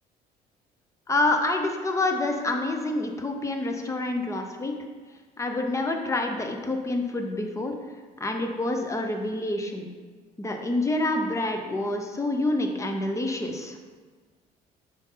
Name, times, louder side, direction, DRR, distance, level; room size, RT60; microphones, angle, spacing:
voice 1, 1.1-4.7 5.4-7.7 8.2-9.9 10.4-13.8, left 2 dB, 15° left, 4 dB, 0.8 m, -27 dB
6.0 x 5.2 x 3.9 m, 1.4 s
cardioid pair, 110°, 17 cm